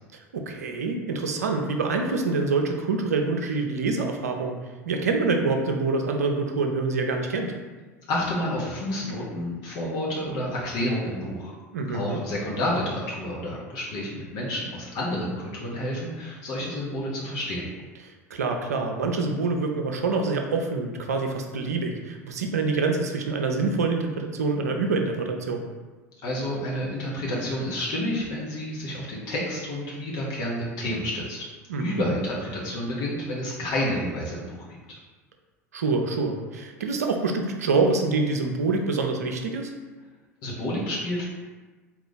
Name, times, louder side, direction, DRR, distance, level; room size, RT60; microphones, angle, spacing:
voice 1, 0.1-4.5 4.9-7.5 11.7-12.2 18.0-25.6 31.7-32.1 35.7-39.7, right 3 dB, 75° right, 4 dB, 0.5 m, -26 dB
voice 2, 8.1-11.5 11.9-17.7 26.2-31.4 31.8-35.0 40.4-41.2, left 1 dB, 50° left, -5 dB, 0.9 m, -29 dB
3.9 x 2.4 x 3.8 m, 1.3 s
figure-of-eight pair, 75°, 9 cm